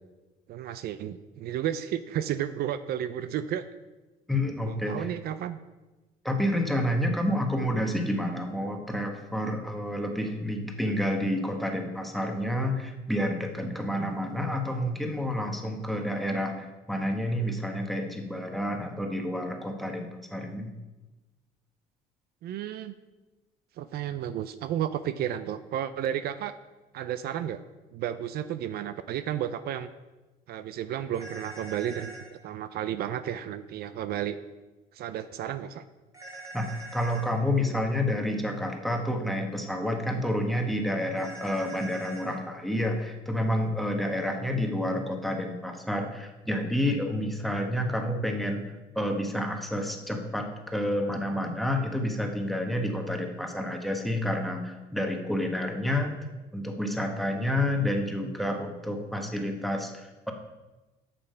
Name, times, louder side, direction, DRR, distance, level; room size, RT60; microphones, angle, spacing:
voice 1, 0.5-3.6 4.6-5.6 22.4-22.9 23.8-26.5 26.9-27.6 27.9-29.9 30.5-34.4 34.9-35.8, right 10 dB, 65° right, 12 dB, 0.5 m, -32 dB
voice 2, 4.3-5.1 6.2-20.7 36.5-48.6 48.9-56.2 56.5-60.3, left 1 dB, ahead, 3 dB, 1.2 m, -29 dB
sound 1, 31.1-32.3 36.1-37.3 41.2-42.3, right 2 dB, 20° right, 2.6 m, -43 dB
7.1 x 6.8 x 5.5 m, 1.1 s
cardioid pair, 110°, 17 cm